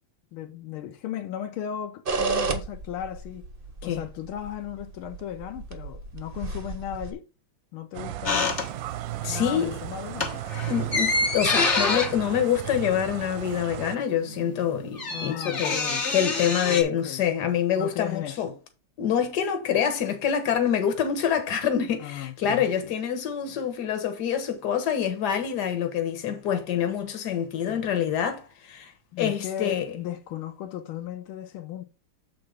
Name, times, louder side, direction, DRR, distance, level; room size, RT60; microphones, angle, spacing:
voice 1, 0.3-3.5 3.8-7.2 7.7-8.5 9.3-10.4 15.1-16.0 16.5-17.2 17.7-18.5 22.0-22.9 27.7-27.9 29.1-31.8, left 10 dB, 85° left, 1.5 m, -36 dB
sound 1, 2.1-7.1, right 4 dB, 60° right, 0.5 m, -32 dB
sound 2, 7.9-14.0, right 14 dB, 75° right, 1.2 m, -35 dB
sound 3, 8.3-9.2 9.5-9.7 10.1-13.6 13.8-13.9 14.1-16.8, left 3 dB, 30° left, 1.2 m, -27 dB
voice 2, 9.2-9.8 10.7-15.7 16.1-18.5 19.0-28.9 29.2-29.9, left 8 dB, 55° left, 1.7 m, -26 dB
7.7 x 3.9 x 5.0 m
omnidirectional pair, 2.4 m